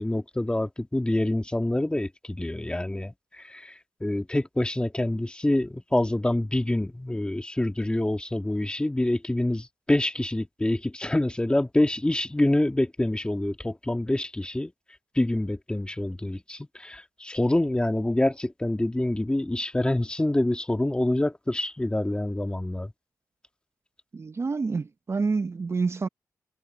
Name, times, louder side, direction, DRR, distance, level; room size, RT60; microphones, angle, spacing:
voice 1, 0.0-14.7 15.2-22.9, left 1 dB, 15° left, 1.9 m, -26 dB
voice 2, 24.1-26.1, right 4 dB, 40° right, 0.8 m, -28 dB
cardioid pair, 60°, 7 cm